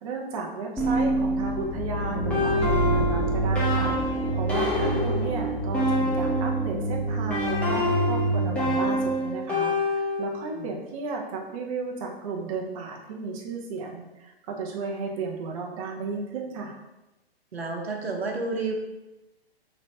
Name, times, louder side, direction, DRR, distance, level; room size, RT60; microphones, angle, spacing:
voice 1, 0.0-16.8, right 4 dB, 35° right, 0 dB, 0.6 m, -34 dB
sound 1, 0.8-6.7 7.3-10.5, left 1 dB, 5° left, 0.8 m, -27 dB
sound 2, 1.4-9.3, right 2 dB, 50° left, 1.0 m, -28 dB
voice 2, 17.5-18.7, right 3 dB, 75° right, 1 dB, 0.9 m, -31 dB
3.2 x 3.1 x 4.2 m, 0.99 s
figure-of-eight pair, 115°, 31 cm